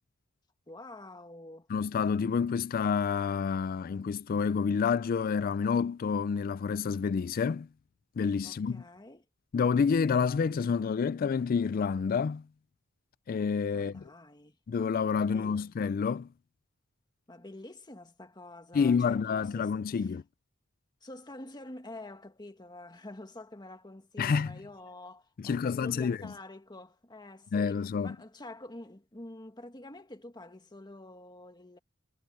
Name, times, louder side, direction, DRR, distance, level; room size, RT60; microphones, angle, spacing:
voice 1, 0.7-1.7 8.4-9.3 13.7-14.6 15.3-15.8 17.3-20.1 21.0-31.8, left 2 dB, 20° left, 1.8 m, -47 dB
voice 2, 1.7-7.7 8.2-8.8 9.5-12.4 13.3-14.0 14.7-16.3 18.7-20.2 24.2-24.5 25.4-26.3 27.5-28.2, left 6 dB, 45° left, 0.3 m, -28 dB
head